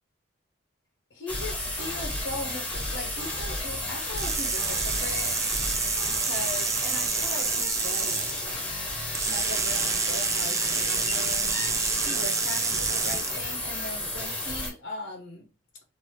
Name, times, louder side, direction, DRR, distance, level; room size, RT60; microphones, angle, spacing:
voice 1, 1.1-5.4 6.1-8.3 9.2-11.6 12.0-15.5, left 2 dB, 75° left, 0.8 m, -39 dB
sound 1, 1.3-14.7, left 1 dB, 10° left, 1.1 m, -32 dB
sound 2, 4.2-8.4 9.1-13.4, right 5 dB, 15° right, 0.3 m, -28 dB
2.8 x 2.5 x 3.1 m
head